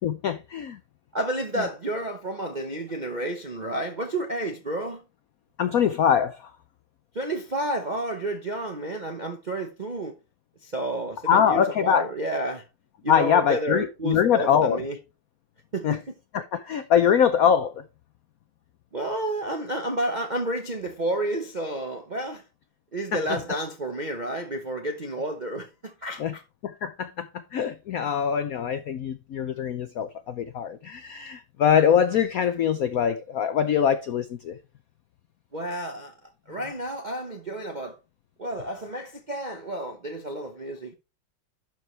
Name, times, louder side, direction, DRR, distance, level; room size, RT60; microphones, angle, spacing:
voice 1, 0.0-0.8 5.6-6.4 11.3-12.1 13.1-14.8 15.8-16.0 16.3-17.7 26.2-26.3 26.6-27.3 27.5-34.5, left 8 dB, 80° left, 0.7 m, -23 dB
voice 2, 1.1-5.0 7.1-10.1 10.6-12.7 13.0-15.0 15.7-16.1 18.9-22.4 22.9-26.4 35.5-36.1 36.5-38.0 38.4-40.9, right 1 dB, 50° right, 0.5 m, -31 dB
12.0 x 4.8 x 3.2 m
omnidirectional pair, 2.3 m